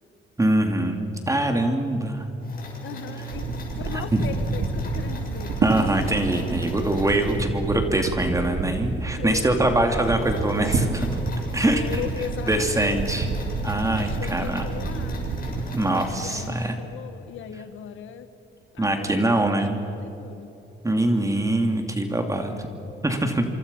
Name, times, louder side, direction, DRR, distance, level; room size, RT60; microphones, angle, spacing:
voice 1, 0.4-2.3 3.8-4.2 5.6-11.1 11.5-11.8 12.5-13.3 13.6-14.6 15.7-16.7 18.8-19.8 20.8-22.5 23.0-23.4, right 1 dB, 15° right, 4 dB, 2.8 m, -23 dB
sound 1, 2.4-8.1 8.7-8.8 9.2-9.3 9.5-16.5, right 1 dB, 45° left, 6.5 m, -36 dB
voice 2, 2.8-5.6 9.2-9.5 11.7-13.2 13.9-15.3 16.2-18.3 18.7-20.5 22.5-22.9, left 8 dB, 80° left, 10 dB, 1.7 m, -38 dB
sound 2, 3.3-15.7, right 3 dB, 60° right, 3.5 m, -29 dB
26.5 x 25.5 x 5.7 m, 2.9 s
cardioid pair, 90°, 20 cm